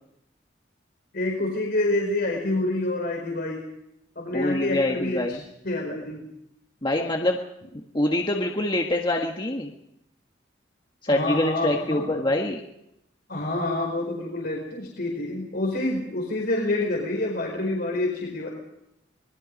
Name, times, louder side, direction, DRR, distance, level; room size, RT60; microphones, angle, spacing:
voice 1, 1.1-3.6 4.2-5.4 5.6-6.3 11.1-12.2 13.3-18.5, left 2 dB, 55° left, -1 dB, 4.6 m, -27 dB
voice 2, 4.3-5.4 6.8-7.4 7.7-9.7 11.0-12.6, left 1 dB, 25° left, 1 dB, 1.5 m, -25 dB
26.0 x 20.5 x 5.4 m, 0.83 s
head